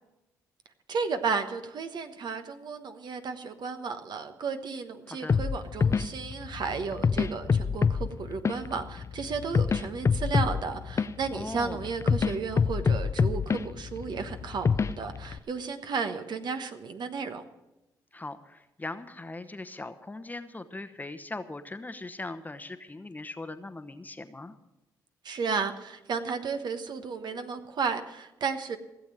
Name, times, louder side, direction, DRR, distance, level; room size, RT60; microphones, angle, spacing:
voice 1, 0.9-17.4 25.2-28.8, right 5 dB, 60° right, 8 dB, 1.2 m, -33 dB
sound 1, 5.3-15.4, left 5 dB, 35° left, 0.5 m, -28 dB
voice 2, 11.3-11.8 18.1-24.5, left 2 dB, 20° left, 10 dB, 1.0 m, -40 dB
16.0 x 7.1 x 7.5 m, 0.99 s
supercardioid pair, 60°, 8 cm